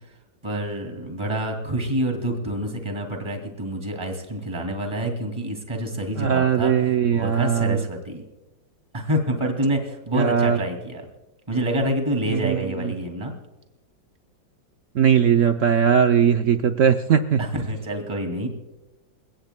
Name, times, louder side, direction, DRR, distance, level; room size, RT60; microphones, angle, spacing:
voice 1, 0.4-6.7 7.1-8.2 8.9-11.0 11.5-13.4 17.4-18.5, right 1 dB, 15° right, 3 dB, 2.3 m, -27 dB
voice 2, 6.2-7.8 10.1-10.6 12.3-12.9 14.9-17.4, right 8 dB, 75° right, 8 dB, 0.7 m, -19 dB
29.0 x 16.5 x 2.2 m, 1.1 s
omnidirectional pair, 2.0 m